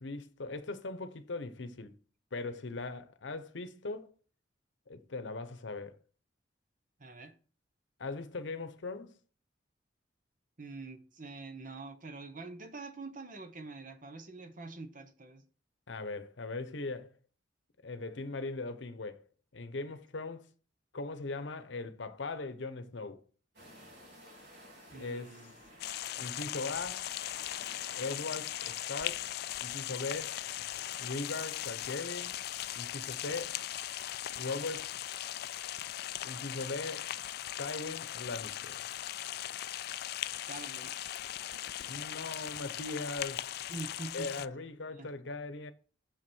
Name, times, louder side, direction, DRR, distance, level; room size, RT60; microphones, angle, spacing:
voice 1, 0.0-2.0 2.3-4.1 4.9-6.0 8.0-9.1 15.9-17.1 17.8-19.3 19.5-20.5 20.9-23.2 24.9-25.4 26.2-27.1 28.0-29.3 29.6-30.4 31.0-32.3 32.7-33.6 34.4-34.9 36.2-37.1 37.6-38.8 41.9-43.5 44.1-45.7, left 3 dB, 75° left, 0.9 m, -39 dB
voice 2, 7.0-7.3 10.6-15.4 24.9-25.8 40.5-40.9 43.7-44.3 44.9-45.1, right 3 dB, 45° right, 1.1 m, -45 dB
sound 1, 23.5-28.9, equal, 65° right, 3.3 m, -55 dB
sound 2, 25.8-44.5, left 13 dB, 60° left, 0.3 m, -39 dB
7.1 x 6.2 x 4.5 m
head